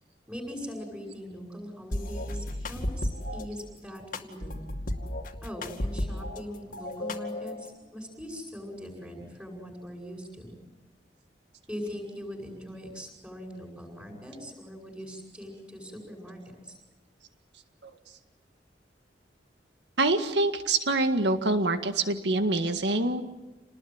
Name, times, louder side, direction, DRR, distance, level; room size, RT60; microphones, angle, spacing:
voice 1, 0.3-4.7 5.4-10.5 11.7-16.8, equal, 5° right, -6 dB, 7.7 m, -41 dB
sound 1, 1.9-3.5 4.1-6.4 6.7-7.7, left 1 dB, 50° left, 2.4 m, -33 dB
voice 2, 20.0-23.2, right 2 dB, 80° right, 8 dB, 1.9 m, -25 dB
29.0 x 20.0 x 9.4 m, 1.1 s
head